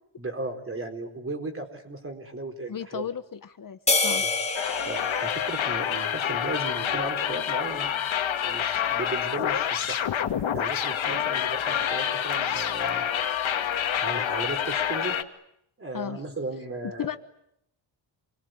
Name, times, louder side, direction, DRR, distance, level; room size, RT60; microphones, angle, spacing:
voice 1, 0.2-3.1 4.2-4.3 4.9-7.9 8.4-10.0 10.5-13.1 14.0-15.2 15.8-17.1, right 2 dB, 30° right, 5 dB, 4.5 m, -36 dB
voice 2, 2.7-4.2 15.9-16.2 17.0-17.2, left 8 dB, 45° left, 9 dB, 1.1 m, -34 dB
sound 1, 3.9-6.5, left 3 dB, 15° left, 2.2 m, -28 dB
sound 2, 4.5-15.2, left 9 dB, 80° left, 2.1 m, -27 dB
28.5 x 22.0 x 9.4 m, 0.78 s
wide cardioid pair, 175°, 46 cm